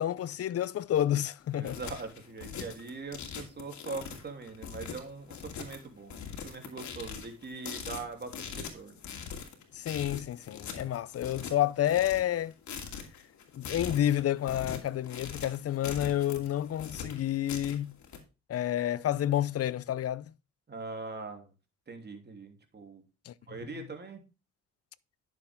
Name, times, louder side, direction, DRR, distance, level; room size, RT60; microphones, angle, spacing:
voice 1, 0.0-1.8 9.7-12.5 13.5-17.9 18.5-20.3 23.3-23.4, left 12 dB, 55° left, 0.6 m, -29 dB
sound 1, 1.4-18.2, left 7 dB, 70° left, 2.6 m, -42 dB
voice 2, 1.5-9.0 20.7-21.5 21.9-23.0 23.5-24.2, right 3 dB, 35° right, 3.1 m, -42 dB
10.5 x 7.3 x 3.5 m
cardioid pair, 90°, 30 cm